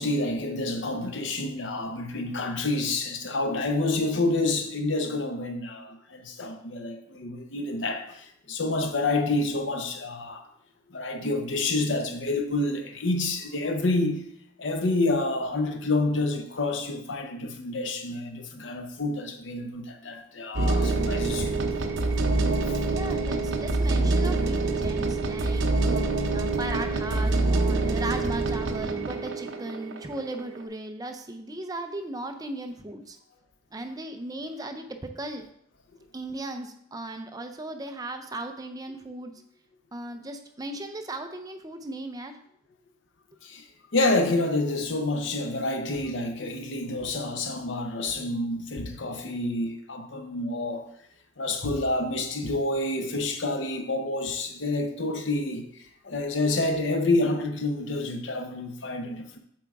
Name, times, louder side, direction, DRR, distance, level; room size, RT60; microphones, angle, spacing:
voice 1, 0.0-10.4 10.9-14.2 14.6-21.6 22.7-22.8 43.4-43.7 43.9-50.8 51.4-55.7 56.0-59.4, left 2 dB, 65° left, 0.8 m, -28 dB
sound 1, 20.5-30.6, right 2 dB, 75° right, 0.7 m, -26 dB
voice 2, 22.8-33.2 33.7-35.5 36.1-39.4 39.9-42.4, right 2 dB, 20° right, 0.5 m, -37 dB
7.7 x 4.6 x 3.6 m
head